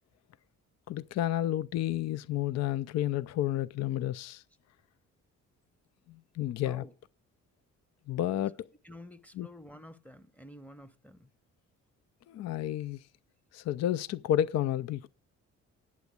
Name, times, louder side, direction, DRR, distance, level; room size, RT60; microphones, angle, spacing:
voice 1, 0.9-4.4 6.1-6.8 8.1-8.7 9.3-9.5 12.3-13.0 13.5-15.1, left 12 dB, 60° left, 0.4 m, -31 dB
voice 2, 8.8-11.3, left 1 dB, 5° left, 0.7 m, -50 dB
9.5 x 7.1 x 8.1 m
cardioid pair, 90°, 30 cm